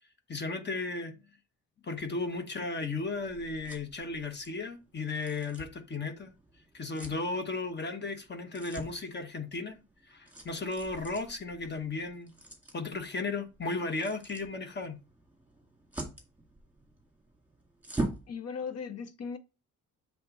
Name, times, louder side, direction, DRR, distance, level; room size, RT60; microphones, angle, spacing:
voice 1, 0.3-1.1 1.8-6.3 6.7-9.8 10.0-12.3 12.7-15.0, left 3 dB, 35° left, 1.1 m, -35 dB
sound 1, 2.0-18.3, right 2 dB, 5° right, 2.0 m, -44 dB
voice 2, 18.3-19.4, left 6 dB, 55° left, 0.8 m, -37 dB
7.6 x 3.6 x 3.9 m
cardioid pair, 125°, 31 cm